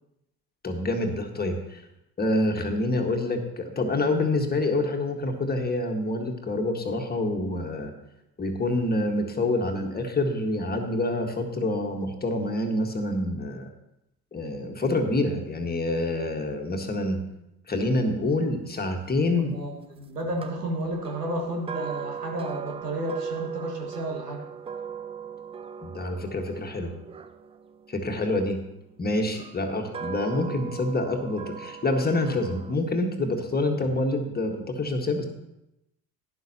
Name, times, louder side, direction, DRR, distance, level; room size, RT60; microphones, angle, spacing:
voice 1, 0.6-1.8 2.2-7.9 8.4-13.7 14.3-17.2 17.7-19.5 25.8-26.9 27.9-28.6 29.0-35.3, left 2 dB, 20° left, 4 dB, 1.6 m, -27 dB
voice 2, 19.4-24.4, right 1 dB, 85° right, 2 dB, 1.6 m, -32 dB
sound 1, 20.4-28.5 29.3-32.7, right 7 dB, 15° right, 0.3 m, -38 dB
12.0 x 10.5 x 2.9 m, 0.86 s
figure-of-eight pair, 60°, 46 cm